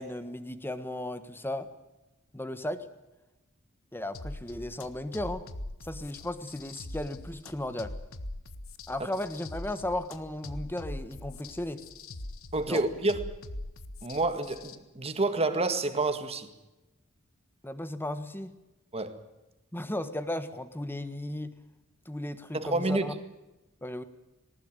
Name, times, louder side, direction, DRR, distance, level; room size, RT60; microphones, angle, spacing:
voice 1, 0.0-1.7 2.3-2.8 3.9-5.4 5.8-8.0 8.9-11.8 12.7-12.8 17.6-18.5 19.7-21.5 22.0-23.2 23.8-24.0, left 1 dB, 10° left, 1.4 m, -35 dB
sound 1, 4.1-14.8, left 1 dB, 75° left, 1.6 m, -42 dB
voice 2, 12.5-13.3 14.0-16.5 18.9-19.2 22.5-23.1, right 2 dB, 30° right, 1.9 m, -29 dB
19.5 x 19.0 x 9.1 m
head